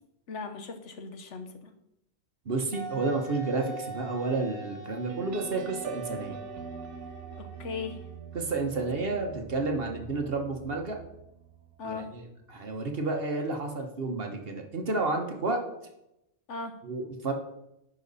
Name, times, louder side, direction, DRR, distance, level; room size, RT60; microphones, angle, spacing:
voice 1, 0.3-1.7 7.4-8.0 11.8-12.1 16.5-16.7, left 4 dB, 65° left, 7 dB, 1.2 m, -38 dB
voice 2, 2.4-6.4 8.3-11.0 11.8-12.2 12.5-15.6 16.8-17.3, right 3 dB, 50° right, 3 dB, 1.2 m, -31 dB
Wind instrument woodwind instrument, 2.7-8.3, right 2 dB, 25° left, 1.4 m, -44 dB
sound 1, 5.1-12.2, right 7 dB, 70° right, 0.8 m, -44 dB
10.5 x 5.3 x 4.0 m, 0.85 s
omnidirectional pair, 1.4 m